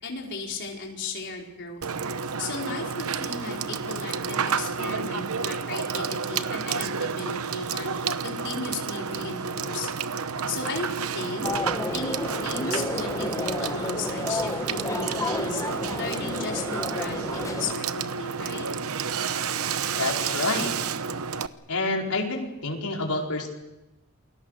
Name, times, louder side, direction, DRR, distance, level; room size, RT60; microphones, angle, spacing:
voice 1, 0.0-1.9 2.4-7.9 8.2-9.9 10.5-11.5 11.9-12.2 12.4-15.6 16.0-18.7, left 3 dB, 55° left, 0 dB, 5.0 m, -35 dB
Water / Water tap faucet / Sink (filling or washing), 1.8-21.5, right 6 dB, 75° right, 0.9 m, -30 dB
sound 1, 11.4-17.7, left 2 dB, 15° left, 1.0 m, -31 dB
voice 2, 20.0-20.7 21.7-23.5, left 2 dB, 90° left, 0 dB, 4.8 m, -28 dB
29.0 x 22.0 x 6.7 m, 0.97 s
head